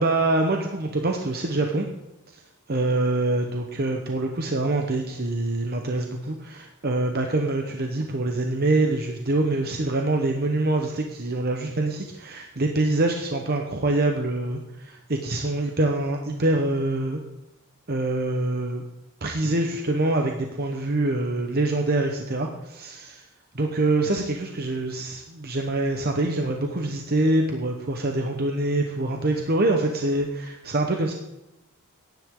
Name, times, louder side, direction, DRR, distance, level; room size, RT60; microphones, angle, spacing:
voice 1, 0.0-1.9 2.7-17.2 17.9-18.8 19.2-23.2 23.5-31.1, right 2 dB, 45° right, 3 dB, 1.0 m, -25 dB
16.0 x 10.5 x 3.8 m, 0.95 s
head